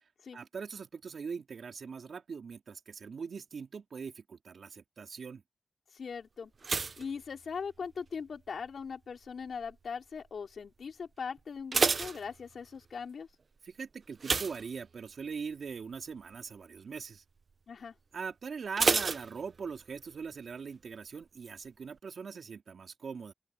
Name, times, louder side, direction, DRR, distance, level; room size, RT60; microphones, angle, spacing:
voice 1, 0.3-5.4 13.6-17.2 18.1-23.3, right 5 dB, 80° right, 3.2 m, -41 dB
voice 2, 5.9-6.5 7.0-13.3 17.7-17.9, left 6 dB, 80° left, 5.5 m, -40 dB
sound 1, 6.6-8.1 8.4-8.9 9.5-9.9 10.1-10.2 10.6-10.7 11.4-12.9 14.2-15.3 15.7-16.0 16.3-16.4 18.8-20.0 20.2-20.3, right 4 dB, 60° right, 1.0 m, -31 dB
open air
cardioid pair, 65°, 0 cm